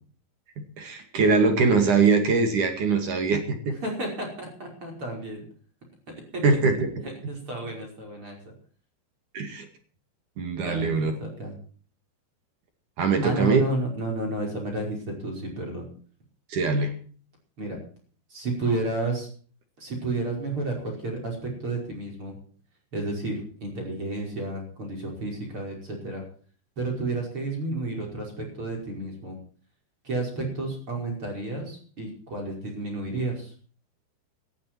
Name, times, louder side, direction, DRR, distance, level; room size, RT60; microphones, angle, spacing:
voice 1, 0.6-3.6 6.4-6.9 9.3-9.7 10.4-11.2 13.0-13.7 16.5-16.9, right 4 dB, 50° right, 6 dB, 3.1 m, -22 dB
voice 2, 3.8-5.4 6.3-6.6 7.0-8.4 10.6-11.6 13.2-15.9 17.6-17.8 18.3-19.3 19.8-22.4 22.9-26.2 26.8-29.4 30.0-33.5, right 2 dB, 25° right, 0 dB, 5.8 m, -31 dB
18.0 x 13.0 x 4.5 m, 0.43 s
omnidirectional pair, 5.5 m